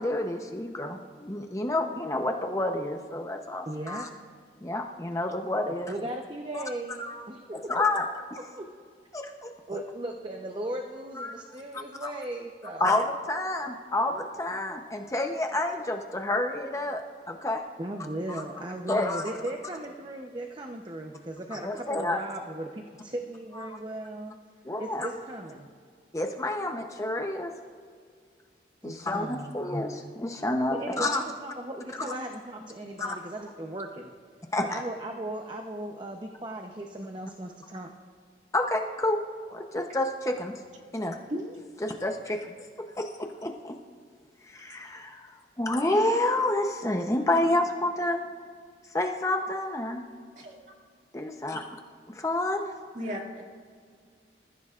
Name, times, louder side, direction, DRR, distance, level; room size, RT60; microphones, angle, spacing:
voice 1, 0.0-4.1 4.6-5.9 6.5-6.6 7.0-7.2 7.7-8.0 9.1-9.8 11.2-11.3 12.0-12.1 12.8-17.0 17.3-17.6 18.3-18.4 18.9-19.2 21.5-22.2 23.6-23.7 24.6-25.1 26.1-27.5 28.8-31.2 33.0-33.2 34.5-34.8 38.5-39.2 39.5-40.5 40.9-41.2 41.8-42.5 42.8-43.8 44.5-45.2 45.6-48.2 48.9-50.0 51.1-51.6 52.1-52.6, left 2 dB, 20° left, 3 dB, 0.8 m, -29 dB
voice 2, 3.7-4.1 5.7-7.8 8.5-8.7 9.7-12.9 17.8-24.4 24.8-25.7 28.8-29.6 30.7-34.1 34.6-37.9, right 1 dB, 25° right, 3 dB, 0.8 m, -37 dB
voice 3, 52.9-53.4, equal, 45° right, 0 dB, 2.4 m, -35 dB
26.5 x 14.5 x 2.5 m, 2.1 s
head